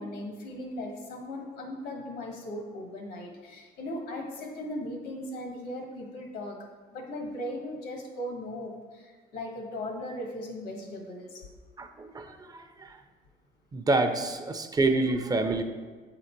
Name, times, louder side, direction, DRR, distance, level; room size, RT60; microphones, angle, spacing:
voice 1, 0.0-11.4, left 1 dB, 80° left, 2 dB, 1.5 m, -38 dB
voice 2, 11.8-13.0 13.7-15.6, right 2 dB, 20° right, 7 dB, 0.5 m, -27 dB
7.8 x 3.8 x 4.5 m, 1.4 s
cardioid pair, 110°, 17 cm